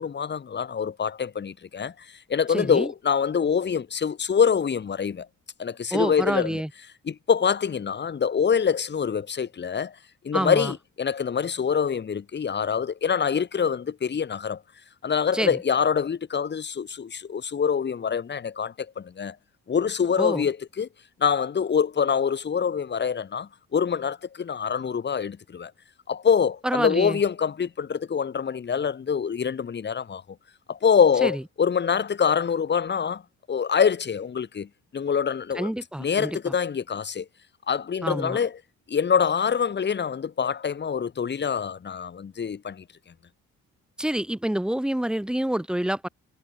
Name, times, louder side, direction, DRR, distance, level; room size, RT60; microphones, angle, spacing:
voice 1, 0.0-5.3 5.6-6.6 7.0-9.9 10.2-14.6 15.0-19.4 19.7-20.9 21.2-25.7 26.1-30.2 30.7-33.2 33.5-35.7 36.0-37.3 37.7-38.6 38.9-42.8, left 7 dB, 35° left, 1.5 m, -25 dB
voice 2, 2.5-2.9 5.9-6.7 10.3-10.7 15.3-15.5 20.2-20.4 26.6-27.2 31.2-31.3 35.6-36.5 38.0-38.4 44.0-46.1, right 1 dB, 5° right, 0.7 m, -27 dB
cardioid pair, 90°, 30 cm